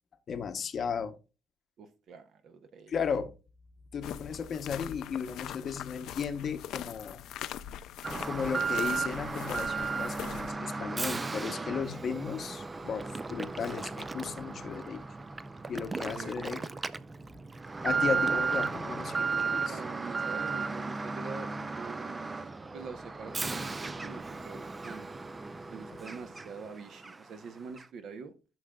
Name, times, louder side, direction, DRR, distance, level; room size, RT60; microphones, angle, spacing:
voice 1, 0.3-1.2 2.9-3.3 3.9-7.2 8.2-15.0 15.7-16.6 17.8-19.8, left 6 dB, 35° left, 0.8 m, -35 dB
voice 2, 1.8-3.0 16.2-16.5 19.7-25.1 25.7-28.3, right 5 dB, 45° right, 0.7 m, -45 dB
sound 1, 4.0-10.5, left 11 dB, 65° left, 0.4 m, -42 dB
Alarm, 8.0-26.7 27.0-27.1 27.8-27.9, right 4 dB, 15° right, 0.3 m, -34 dB
13.5 x 6.3 x 2.2 m
cardioid pair, 170°, 0 cm